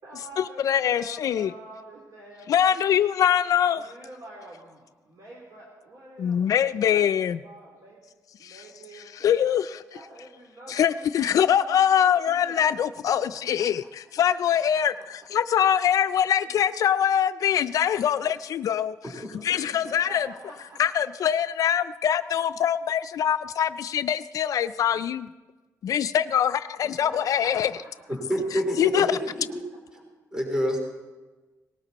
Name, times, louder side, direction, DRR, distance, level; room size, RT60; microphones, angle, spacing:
voice 1, 0.0-2.9 3.8-8.0 8.4-9.6 9.9-13.9 15.0-15.1 15.6-15.7 19.1-21.0 26.8-28.2 28.8-29.1 29.7-29.8, right 2 dB, 60° right, 3.1 m, -47 dB
voice 2, 0.6-1.5 2.5-3.8 6.2-7.4 9.2-9.8 10.7-13.8 14.1-19.0 19.4-20.3 20.8-25.3 25.8-27.7 28.8-29.2, left 9 dB, 60° left, 0.4 m, -23 dB
voice 3, 28.1-29.6 30.3-30.8, equal, 10° right, 3.3 m, -27 dB
19.0 x 18.0 x 4.1 m
cardioid pair, 150°, 6 cm